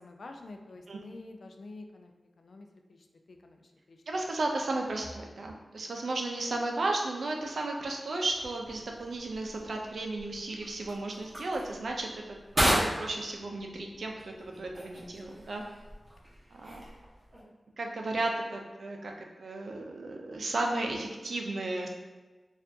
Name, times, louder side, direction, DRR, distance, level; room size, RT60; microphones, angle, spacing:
voice 1, 0.0-3.0 3.3-4.0, left 2 dB, 65° left, 4 dB, 0.4 m, -48 dB
voice 2, 4.1-15.6 16.5-16.8 17.8-19.1 19.4-21.9, right 2 dB, 70° right, 1 dB, 0.5 m, -34 dB
sound 1, 8.2-17.4, equal, 25° right, 1.1 m, -36 dB
4.3 x 2.5 x 2.7 m, 1.3 s
wide cardioid pair, 125°, 0 cm